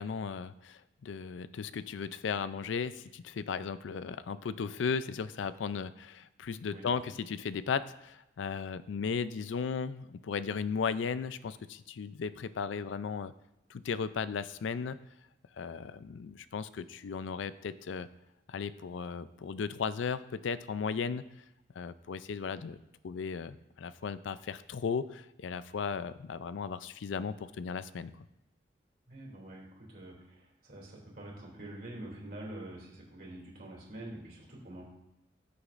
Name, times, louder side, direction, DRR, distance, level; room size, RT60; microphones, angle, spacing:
voice 1, 0.0-13.3 13.7-15.0 15.6-18.1 18.5-21.3 21.8-22.8 23.0-28.1, left 6 dB, 85° left, 14 dB, 0.4 m, -36 dB
voice 2, 29.1-34.8, right 1 dB, 50° right, -3 dB, 2.7 m, -46 dB
14.0 x 6.7 x 2.5 m, 0.91 s
head